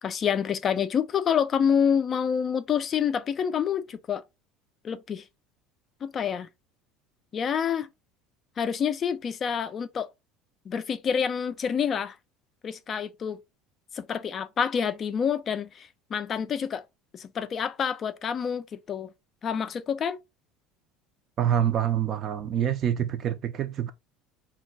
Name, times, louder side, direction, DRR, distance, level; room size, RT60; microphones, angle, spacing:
voice 1, 0.0-4.2 4.8-5.2 6.0-6.5 7.3-7.9 8.6-10.1 10.7-12.2 12.6-13.4 13.9-16.8 17.1-19.1 19.4-20.2, left 7 dB, 35° left, 0.3 m, -27 dB
voice 2, 21.4-23.9, right 10 dB, 40° right, 0.4 m, -26 dB
2.3 x 2.2 x 3.8 m
cardioid pair, 130°, 0 cm